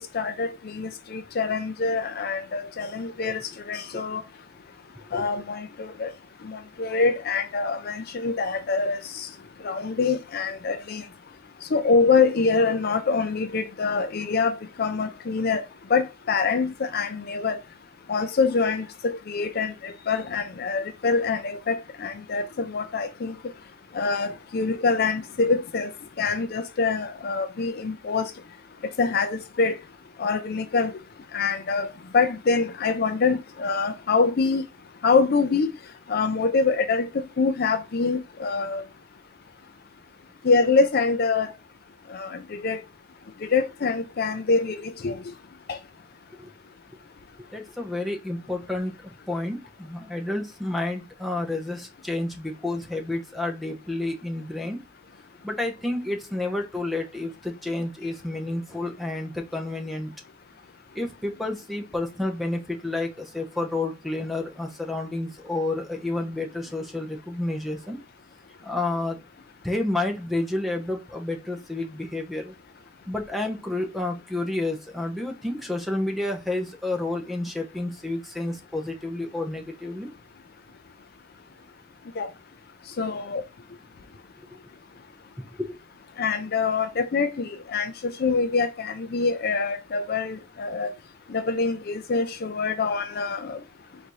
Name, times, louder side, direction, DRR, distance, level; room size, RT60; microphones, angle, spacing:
voice 1, 0.1-4.2 5.1-6.1 6.4-9.3 9.6-11.0 11.7-15.6 15.9-17.6 18.1-23.3 23.9-25.9 26.2-28.3 29.0-29.8 30.2-30.9 31.3-34.6 35.0-35.7 36.1-38.8 40.4-41.5 42.1-42.8 43.4-45.2 45.7-45.8 82.2-82.3 83.0-83.4 86.2-90.9 91.3-93.6, left 4 dB, 50° left, 0.4 m, -25 dB
voice 2, 5.0-5.3 46.4-46.5 47.5-54.8 55.4-60.1 60.9-68.0 68.6-69.2 69.6-72.6 73.1-80.1 84.4-84.5 85.6-85.8, left 2 dB, ahead, 0.8 m, -30 dB
4.0 x 2.7 x 4.6 m
head